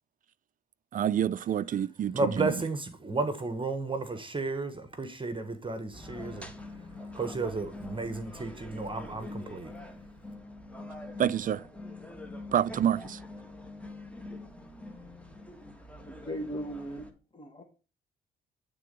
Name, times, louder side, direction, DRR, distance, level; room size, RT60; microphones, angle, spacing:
voice 1, 0.9-2.5 11.2-11.7 12.5-13.2, right 9 dB, 45° right, 0.4 m, -28 dB
voice 2, 2.1-6.5 7.1-9.7, right 3 dB, 25° right, 1.1 m, -33 dB
sound 1, 5.9-17.1, left 2 dB, 5° left, 1.4 m, -44 dB
voice 3, 16.1-17.1 17.3-17.6, equal, 25° left, 1.4 m, -37 dB
9.0 x 3.8 x 5.3 m
supercardioid pair, 70°, 19 cm